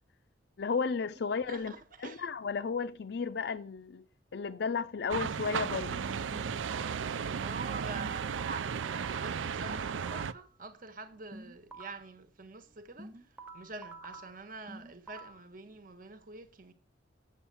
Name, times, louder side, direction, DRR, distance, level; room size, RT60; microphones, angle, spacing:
voice 1, 0.6-1.7 2.0-4.0 4.3-6.0, left 5 dB, 60° left, 0.4 m, -33 dB
voice 2, 1.5-2.3 7.3-16.7, right 4 dB, 45° right, 1.3 m, -46 dB
sound 1, 5.1-10.3, right 6 dB, 85° right, 0.5 m, -35 dB
sound 2, 6.3-7.2 8.0-10.5 11.3-12.2 13.0-15.5, right 2 dB, 10° right, 1.1 m, -49 dB
8.5 x 7.2 x 6.9 m
head